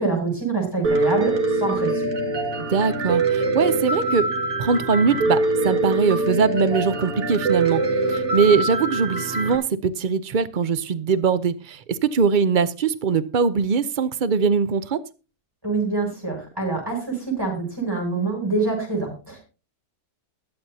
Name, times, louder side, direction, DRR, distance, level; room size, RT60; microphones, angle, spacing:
voice 1, 0.0-2.1 15.6-19.4, right 3 dB, 15° right, 7.7 m, -25 dB
Piano, 0.8-9.6, right 2 dB, 50° right, 2.3 m, -23 dB
voice 2, 2.6-4.3 4.6-7.8 8.1-15.0, right 5 dB, 90° right, 0.4 m, -21 dB
21.5 x 8.8 x 2.7 m
omnidirectional pair, 1.8 m